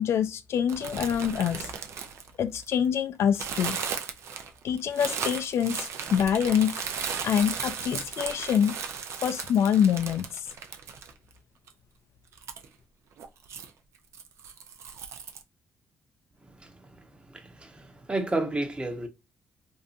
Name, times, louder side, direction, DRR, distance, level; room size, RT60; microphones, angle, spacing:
voice 1, 0.0-1.7 2.4-3.8 4.6-6.8 7.2-8.8 9.2-10.5, left 8 dB, 65° left, 0.3 m, -25 dB
sound 1, 0.7-2.9 3.3-11.3 11.7-11.8 12.3-12.7 13.2-13.7 14.1-15.4, right 6 dB, 70° right, 0.5 m, -36 dB
voice 2, 17.3-19.1, right 2 dB, 20° right, 0.8 m, -31 dB
2.7 x 2.3 x 2.4 m
supercardioid pair, 65°, 5 cm